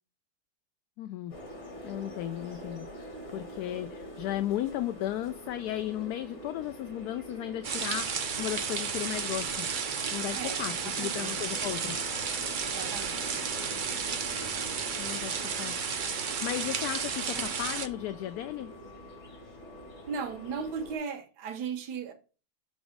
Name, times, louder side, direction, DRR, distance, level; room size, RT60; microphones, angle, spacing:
voice 1, 1.0-1.3 1.8-9.7 10.1-12.0 15.0-15.3 15.6-15.9 16.2-18.7, left 13 dB, 75° left, 1.1 m, -35 dB
sound 1, 1.3-21.0, equal, 45° left, 2.4 m, -45 dB
sound 2, 7.6-17.9, right 6 dB, 55° right, 0.5 m, -33 dB
voice 2, 11.0-11.4 12.6-13.5 20.1-22.1, right 6 dB, 90° right, 1.5 m, -37 dB
6.2 x 4.0 x 4.8 m
omnidirectional pair, 1.7 m